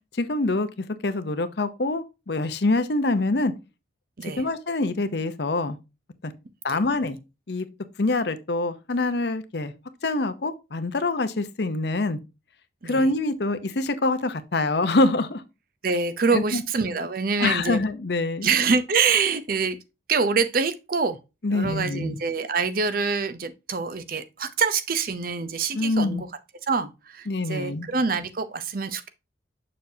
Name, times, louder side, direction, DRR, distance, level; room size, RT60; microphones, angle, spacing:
voice 1, 0.1-0.7 1.0-3.5 4.2-5.8 6.2-6.3 6.6-7.2 7.5-7.7 8.0-9.7 10.0-12.2 12.8-15.4 16.3-16.6 17.4-18.5 21.4-22.2 25.7-26.2 27.3-27.9, left 2 dB, 60° left, 0.7 m, -25 dB
voice 2, 15.8-17.8 18.4-19.8 20.1-21.2 21.5-26.3 26.7-29.1, right 5 dB, 50° right, 0.6 m, -25 dB
6.8 x 6.4 x 2.7 m
head